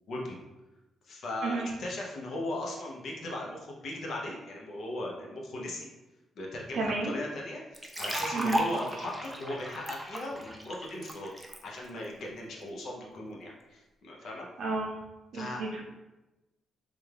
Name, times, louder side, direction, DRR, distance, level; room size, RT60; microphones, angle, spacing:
voice 1, 1.0-5.9 6.4-11.3 11.6-14.5 15.3-15.6, left 1 dB, 55° left, -2 dB, 0.7 m, -38 dB
voice 2, 6.7-7.1 8.3-8.6 14.6-14.9 15.3-15.8, right 3 dB, 55° right, -1 dB, 0.7 m, -31 dB
sound 1, 7.7-11.6, right 1 dB, 5° right, 0.4 m, -34 dB
3.3 x 2.3 x 3.2 m, 1.1 s
cardioid pair, 150°, 0 cm